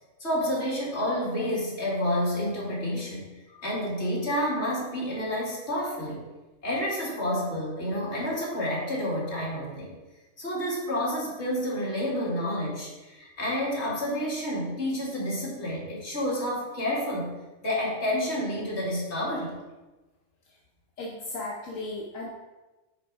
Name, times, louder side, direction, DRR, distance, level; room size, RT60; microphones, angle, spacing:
voice 1, 0.2-3.2 3.6-6.2 6.6-9.9 10.4-17.3 17.6-19.6, equal, 60° left, -5 dB, 2.5 m, -29 dB
voice 2, 21.0-22.3, left 2 dB, 80° left, -4 dB, 1.4 m, -36 dB
9.4 x 3.7 x 4.7 m, 1.1 s
omnidirectional pair, 1.3 m